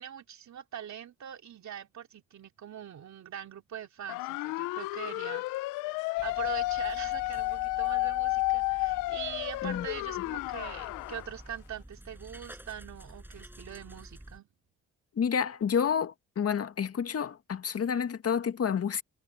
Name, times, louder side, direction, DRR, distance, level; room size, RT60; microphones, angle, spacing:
voice 1, 0.0-5.5 5.9-14.5, right 9 dB, 65° right, 3.1 m, -43 dB
sound 1, 4.1-11.3, left 21 dB, 85° left, 0.6 m, -32 dB
sound 2, 6.2-14.4, right 1 dB, 5° right, 6.8 m, -50 dB
voice 2, 15.2-19.0, left 7 dB, 50° left, 1.9 m, -29 dB
supercardioid pair, 55°, 31 cm